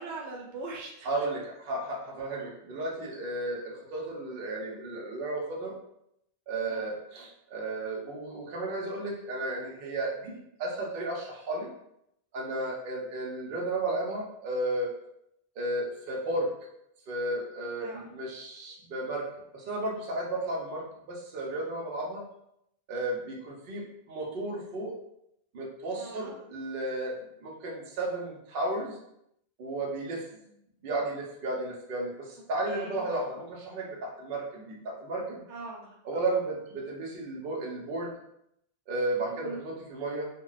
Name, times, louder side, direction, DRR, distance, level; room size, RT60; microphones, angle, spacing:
voice 1, 0.0-1.3 6.7-6.8 17.8-18.1 26.0-26.3 30.3-30.6 32.6-33.1 35.5-36.2 39.2-39.6, right 3 dB, 90° right, 0 dB, 0.9 m, -42 dB
voice 2, 1.0-5.7 6.5-11.7 12.3-14.9 15.6-16.5 17.1-22.2 22.9-24.9 25.5-29.0 29.6-30.2 30.8-35.4 36.0-38.1 38.9-40.3, right 2 dB, 60° right, -1 dB, 0.8 m, -33 dB
2.2 x 2.1 x 3.8 m, 0.77 s
omnidirectional pair, 1.1 m